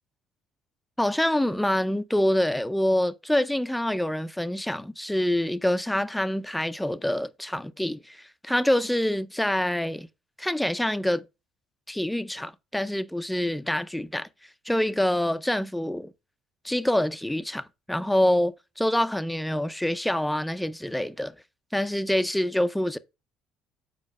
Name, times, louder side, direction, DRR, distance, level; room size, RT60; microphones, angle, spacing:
voice 1, 1.0-10.1 10.4-11.2 11.9-14.3 14.7-16.1 16.6-21.3 21.7-23.0, left 1 dB, 5° left, 0.5 m, -26 dB
5.3 x 4.4 x 6.2 m
hypercardioid pair, 60°, 0 cm